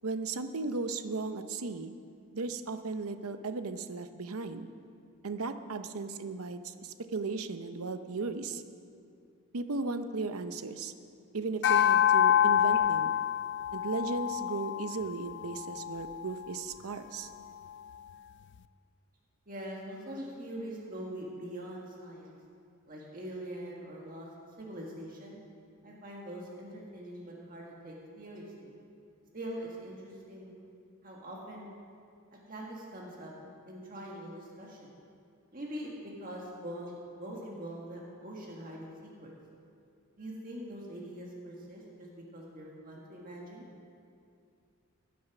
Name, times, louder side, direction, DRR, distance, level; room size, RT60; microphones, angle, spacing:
voice 1, 0.0-1.9 2.3-4.7 5.2-8.6 9.5-10.9 11.3-13.1 13.7-17.3, right 3 dB, 80° right, 9 dB, 0.7 m, -36 dB
sound 1, 11.6-16.2, left 10 dB, 50° left, 0.3 m, -27 dB
voice 2, 19.5-22.3 22.9-24.3 24.6-25.4 25.8-28.7 29.3-30.5 31.0-31.7 32.5-33.3 33.7-34.9 35.5-39.3 40.2-43.7, right 1 dB, 40° right, -3 dB, 1.7 m, -43 dB
16.0 x 8.5 x 6.0 m, 2.4 s
head